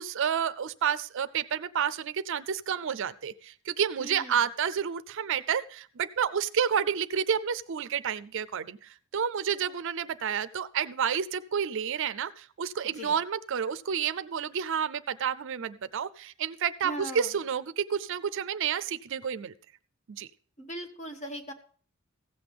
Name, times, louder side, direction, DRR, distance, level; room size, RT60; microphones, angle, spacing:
voice 1, 0.0-19.5 20.1-20.3, right 7 dB, 60° right, 16 dB, 0.5 m, -30 dB
voice 2, 4.0-4.4 13.0-13.1 16.8-17.3 20.6-21.5, equal, 35° left, 5 dB, 1.3 m, -39 dB
15.5 x 7.8 x 3.5 m, 0.44 s
head